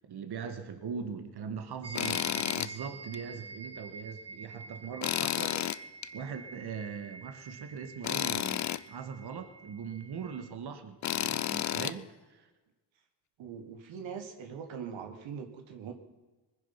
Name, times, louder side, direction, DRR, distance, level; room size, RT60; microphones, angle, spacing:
voice 1, 0.1-5.9 6.1-12.5, right 6 dB, 60° right, 7 dB, 1.7 m, -41 dB
sound 1, 1.8-10.5, right 3 dB, 30° right, 1.4 m, -47 dB
Tools, 2.0-2.7 3.1-3.2 5.0-6.1 8.0-8.8 11.0-11.9, left 11 dB, 40° left, 0.5 m, -31 dB
voice 2, 13.4-15.9, right 7 dB, 80° right, 5 dB, 1.7 m, -42 dB
20.5 x 10.0 x 5.8 m, 1.2 s
cardioid pair, 85°, 45 cm